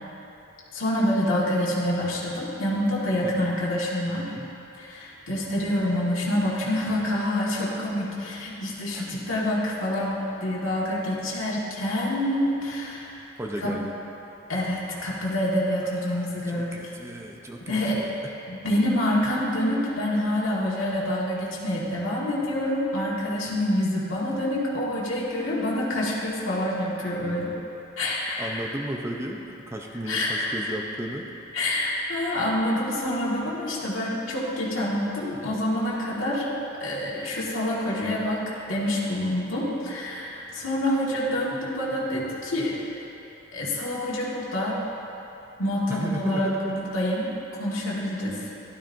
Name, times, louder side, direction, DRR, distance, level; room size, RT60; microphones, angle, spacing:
voice 1, 0.7-4.3 4.8-13.2 13.6-13.7 14.5-16.7 17.7-18.0 18.5-27.5 28.0-28.6 30.0-30.7 31.5-36.5 36.8-38.4 38.7-42.8 43.5-44.8 45.6-47.3 47.6-48.4, left 1 dB, 80° left, -6 dB, 1.8 m, -27 dB
voice 2, 4.2-4.5 8.9-9.2 13.4-13.9 15.8-18.1 28.4-31.3 45.9-46.8, right 1 dB, 15° right, 1 dB, 0.5 m, -35 dB
12.5 x 11.5 x 2.6 m, 2.9 s
head